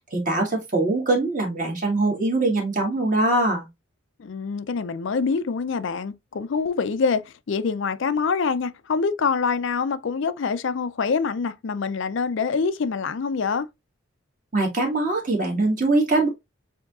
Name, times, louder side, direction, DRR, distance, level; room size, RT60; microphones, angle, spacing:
voice 1, 0.1-3.7 14.5-16.3, right 2 dB, 40° right, 1.6 m, -22 dB
voice 2, 4.2-13.7, left 5 dB, 60° left, 0.4 m, -25 dB
7.1 x 2.8 x 2.4 m
head